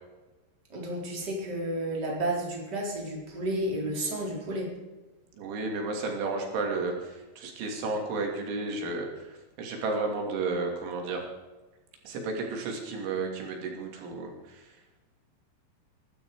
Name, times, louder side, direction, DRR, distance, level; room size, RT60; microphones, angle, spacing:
voice 1, 0.7-4.7, right 1 dB, 25° right, -2 dB, 4.2 m, -31 dB
voice 2, 5.4-11.2 12.0-14.7, right 3 dB, 90° right, 2 dB, 5.1 m, -32 dB
21.5 x 12.5 x 4.8 m, 1.1 s
omnidirectional pair, 5.3 m